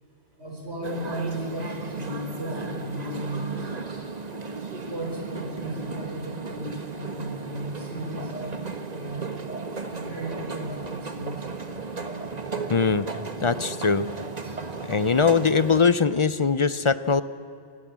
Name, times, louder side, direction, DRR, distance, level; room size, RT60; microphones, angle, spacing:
voice 1, 0.4-3.7 4.9-9.3 9.8-11.4 14.4-14.6, right 1 dB, 90° right, 0 dB, 5.8 m, -35 dB
sound 1, 0.8-15.8, right 4 dB, 40° right, 1.5 m, -35 dB
voice 2, 12.7-13.1 13.4-14.1 14.9-17.2, left 5 dB, 40° left, 15 dB, 0.5 m, -21 dB
25.0 x 19.5 x 7.4 m, 2.7 s
omnidirectional pair, 1.1 m